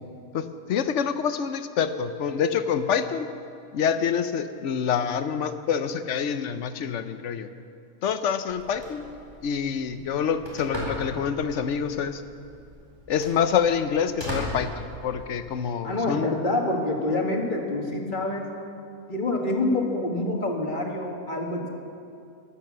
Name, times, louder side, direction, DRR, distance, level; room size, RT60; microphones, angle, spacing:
voice 1, 0.3-3.3 3.7-7.5 8.0-9.0 9.4-12.2 13.1-16.3, left 7 dB, 60° left, 11 dB, 0.9 m, -26 dB
Telephone, 8.5-15.5, equal, 15° right, 4.2 m, -38 dB
voice 2, 15.8-18.5 19.1-21.7, left 2 dB, 35° left, 1 dB, 1.8 m, -26 dB
13.5 x 12.0 x 7.5 m, 2.5 s
omnidirectional pair, 1.5 m